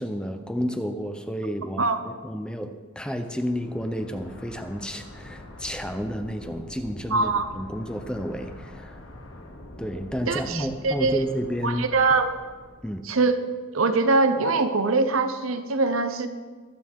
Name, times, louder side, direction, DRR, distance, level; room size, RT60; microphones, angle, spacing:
voice 1, 0.0-9.0 9.8-11.8 12.8-13.0, equal, 5° left, 7 dB, 0.7 m, -31 dB
sound 1, 3.2-13.0, left 1 dB, 75° left, 1.6 m, -44 dB
voice 2, 7.1-7.5 10.3-11.2 11.6-12.4 13.0-13.4 13.7-16.3, right 3 dB, 80° right, 9 dB, 0.9 m, -23 dB
23.0 x 9.0 x 3.7 m, 1.4 s
head